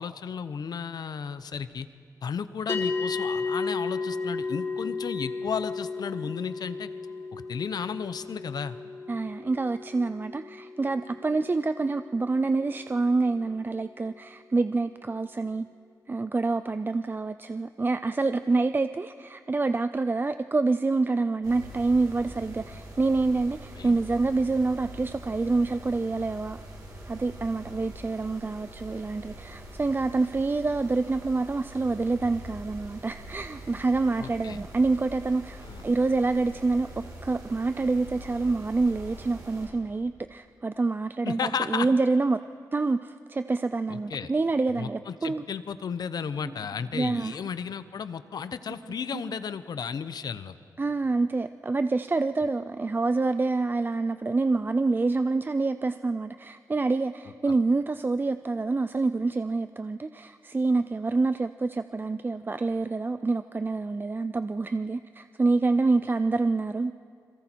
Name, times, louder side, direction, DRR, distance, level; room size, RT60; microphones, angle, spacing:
voice 1, 0.0-1.9 2.2-6.9 7.3-8.8 23.8-23.9 34.2-34.6 35.6-35.8 41.2-41.9 43.9-44.3 44.8-50.6, left 6 dB, 70° left, 13 dB, 0.9 m, -34 dB
sound 1, 2.7-13.2, left 4 dB, 35° left, 2.5 m, -34 dB
voice 2, 9.1-15.7 16.1-26.6 27.1-42.4 42.7-45.4 46.4-46.6 46.9-47.4 49.1-49.4 50.8-66.9, right 3 dB, 30° right, 11 dB, 0.5 m, -27 dB
sound 2, 21.4-39.7, right 1 dB, 60° right, 7.9 m, -44 dB
30.0 x 22.5 x 4.6 m, 2.4 s
cardioid pair, 75°, 7 cm